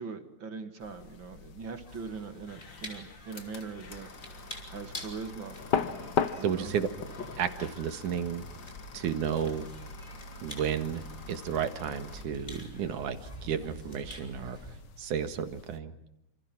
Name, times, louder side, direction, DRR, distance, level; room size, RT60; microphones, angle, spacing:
voice 1, 0.0-4.1 4.4-5.6 6.4-6.7, right 5 dB, 45° right, 8 dB, 2.4 m, -41 dB
sound 1, 0.8-15.8, left 7 dB, 60° left, 1.1 m, -40 dB
sound 2, 1.9-14.8, equal, 15° left, 5.4 m, -48 dB
sound 3, 2.5-12.3, left 2 dB, 40° left, 2.5 m, -47 dB
voice 2, 6.4-6.9 7.4-8.4 8.9-9.7 10.4-14.6 15.0-15.9, right 8 dB, 85° right, 9 dB, 3.2 m, -32 dB
28.0 x 28.0 x 6.2 m, 0.79 s
omnidirectional pair, 3.5 m